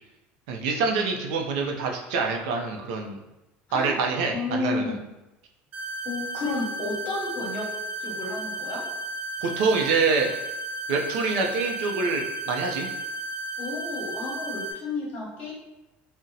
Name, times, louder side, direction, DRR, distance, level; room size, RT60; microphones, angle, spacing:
voice 1, 0.5-3.2 3.7-5.0 9.4-10.3 10.9-12.9, right 4 dB, 85° right, 1 dB, 0.5 m, -26 dB
voice 2, 4.3-5.0 6.0-7.7 8.0-8.8 13.6-15.5, left 3 dB, 35° left, -4 dB, 1.0 m, -31 dB
sound 1, 5.7-14.7, right 1 dB, 40° right, 0.5 m, -34 dB
2.7 x 2.1 x 3.8 m, 0.97 s
cardioid pair, 175°, 4 cm